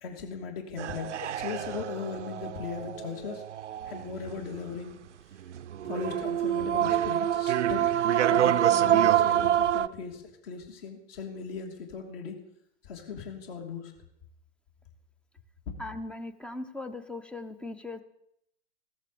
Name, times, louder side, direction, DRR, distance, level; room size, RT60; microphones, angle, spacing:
voice 1, 0.0-3.4 3.9-4.9 5.8-7.9 8.3-12.4 12.8-13.9, left 6 dB, 55° left, 3 dB, 3.0 m, -38 dB
sound 1, 0.8-4.6 5.5-9.9, right 11 dB, 90° right, 0.6 m, -26 dB
voice 2, 15.8-18.0, left 2 dB, 5° left, 11 dB, 0.5 m, -39 dB
15.0 x 13.5 x 5.1 m, 0.78 s
hypercardioid pair, 130°, 35 cm